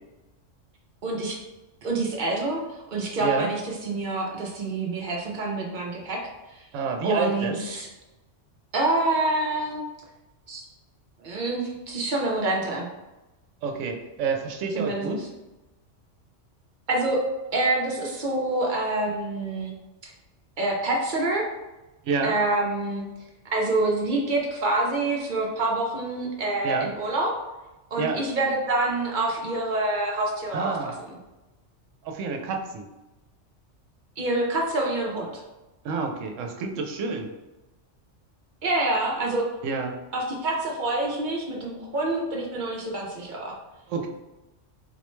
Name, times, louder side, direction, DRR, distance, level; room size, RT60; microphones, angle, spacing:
voice 1, 1.0-1.4 1.8-2.6 2.9-6.2 6.5-6.7 7.0-7.9 8.7-9.8 10.5-10.6 11.2-12.9 14.7-15.2 16.9-17.2 17.5-19.7 20.0-20.1 20.6-21.5 22.2-23.1 23.5-27.3 27.9-31.2 34.2-35.4 38.6-39.5 40.1-43.5, right 2 dB, 50° right, -1 dB, 0.6 m, -26 dB
voice 2, 6.7-7.6 13.6-15.2 22.0-22.3 26.6-26.9 28.0-28.2 30.5-30.9 32.0-32.8 35.8-37.3 39.6-40.0 43.9-44.1, right 4 dB, 85° right, 4 dB, 0.9 m, -28 dB
4.2 x 2.1 x 3.0 m, 1.1 s
omnidirectional pair, 1.3 m